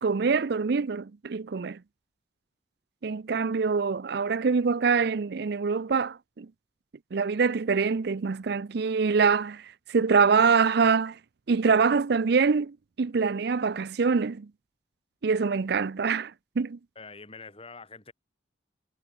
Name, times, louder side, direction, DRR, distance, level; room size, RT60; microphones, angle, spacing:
voice 1, 0.0-1.8 3.0-6.5 7.1-11.2 11.5-14.5 15.2-16.8, right 5 dB, 65° right, 0.5 m, -25 dB
voice 2, 17.0-18.1, left 4 dB, 30° left, 7.6 m, -45 dB
head